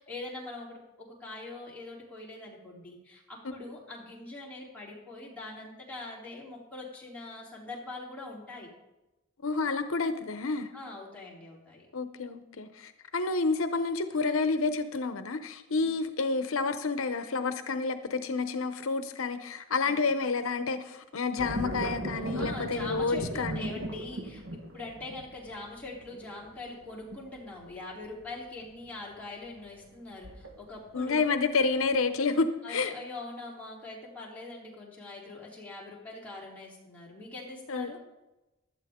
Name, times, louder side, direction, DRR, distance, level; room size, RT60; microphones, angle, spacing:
voice 1, 0.0-8.7 10.7-11.9 15.7-15.9 19.8-20.1 22.3-24.4 24.7-31.3 32.6-38.0, left 2 dB, 5° left, -5 dB, 3.5 m, -43 dB
voice 2, 9.4-10.7 11.9-23.7 30.9-32.9 37.7-37.9, left 4 dB, 75° left, 9 dB, 0.7 m, -29 dB
sound 1, 21.4-31.0 31.4-32.0, equal, 70° right, 1.3 m, -39 dB
16.0 x 12.0 x 3.7 m, 1.0 s
head